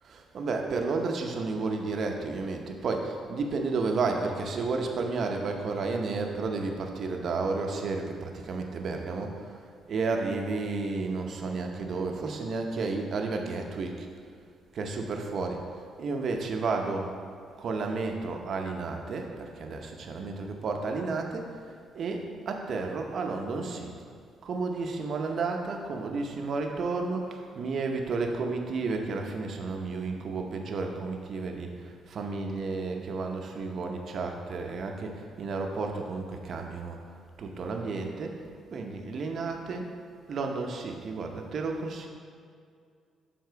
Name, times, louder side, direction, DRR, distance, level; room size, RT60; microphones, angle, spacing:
voice 1, 0.0-9.6 9.9-14.1 14.7-15.6 16.0-17.2 17.6-21.6 21.9-24.1 24.4-37.0 37.4-38.4 38.7-39.9 40.3-42.1, right 3 dB, 60° right, 3 dB, 0.7 m, -32 dB
6.8 x 3.6 x 4.6 m, 2.2 s
cardioid pair, 90°, 0 cm